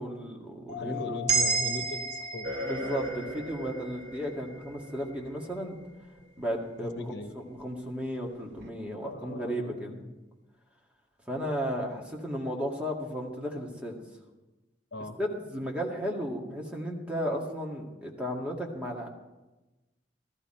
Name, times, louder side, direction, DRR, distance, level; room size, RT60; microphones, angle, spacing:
voice 1, 0.0-1.2 2.6-5.8 6.4-9.9 11.3-14.0 15.2-19.1, equal, 5° right, -1 dB, 2.0 m, -34 dB
Mallet percussion, 0.7-3.2, left 13 dB, 35° left, 5.9 m, -42 dB
voice 2, 0.8-2.5 7.0-7.3 9.0-10.1 14.9-15.2, left 1 dB, 70° left, 7 dB, 1.1 m, -39 dB
sound 1, 1.3-5.5, right 5 dB, 40° right, 1.8 m, -32 dB
sound 2, 2.4-6.5 7.6-7.7 8.6-8.7, equal, 80° right, 1.3 m, -40 dB
14.5 x 14.0 x 4.4 m, 1.1 s
head